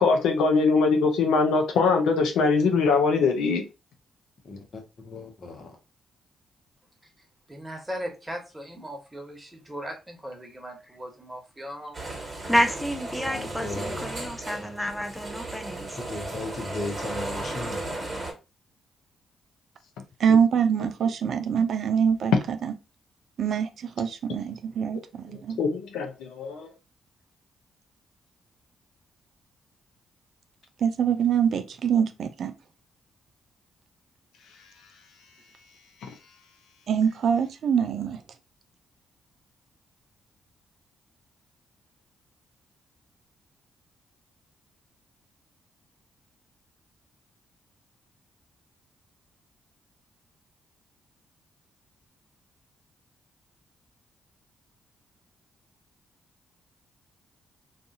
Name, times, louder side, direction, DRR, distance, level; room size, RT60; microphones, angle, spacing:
voice 1, 0.0-3.6 25.3-26.7 36.0-36.1, left 4 dB, 75° left, 0.5 m, -22 dB
voice 2, 4.4-5.8 12.1-12.5 13.1-14.3 16.0-18.0, left 3 dB, 55° left, 0.9 m, -37 dB
voice 3, 7.5-12.0, equal, 15° right, 1.2 m, -38 dB
sound 1, 11.9-18.3, right 2 dB, 35° right, 1.3 m, -35 dB
voice 4, 12.5-16.0, equal, 5° left, 0.5 m, -29 dB
voice 5, 20.2-22.3 23.4-23.7 24.0-25.6 30.8-32.5 36.9-38.2, right 7 dB, 65° right, 0.3 m, -24 dB
2.5 x 2.4 x 2.7 m
hypercardioid pair, 45°, 0 cm